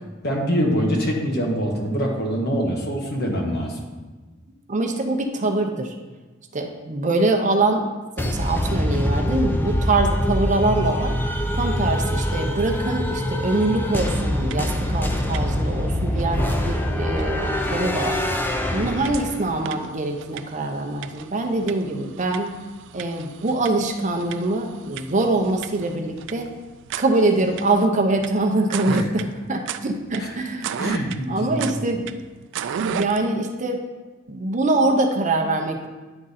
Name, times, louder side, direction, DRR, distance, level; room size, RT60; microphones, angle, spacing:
voice 1, 0.2-3.8 28.9-29.0 30.2-30.3 30.8-31.7, equal, 55° left, 0 dB, 1.3 m, -24 dB
voice 2, 4.7-5.9 6.5-7.9 8.2-11.2 11.6-18.2 18.7-22.5 22.9-26.5 27.0-30.8 31.3-32.2 32.8-33.8 34.3-35.9, right 2 dB, 40° right, 3 dB, 0.7 m, -23 dB
sound 1, 8.2-19.6, left 1 dB, 10° left, 0.5 m, -24 dB
sound 2, 14.5-14.8 15.1-15.7 16.2-16.3 17.2-17.3 17.8-17.9 18.2-33.3, right 7 dB, 65° right, 0.3 m, -35 dB
9.8 x 3.8 x 4.1 m, 1.3 s
head